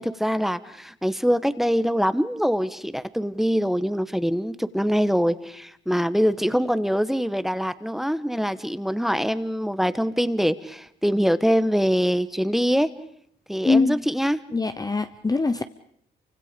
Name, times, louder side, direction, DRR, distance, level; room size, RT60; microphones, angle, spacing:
voice 1, 0.0-12.9 13.5-14.4, equal, ahead, 13 dB, 1.3 m, -24 dB
voice 2, 13.6-14.0 14.5-15.6, left 3 dB, 20° left, 9 dB, 0.9 m, -22 dB
28.5 x 25.0 x 5.2 m, 0.64 s
cardioid pair, 90°, 20 cm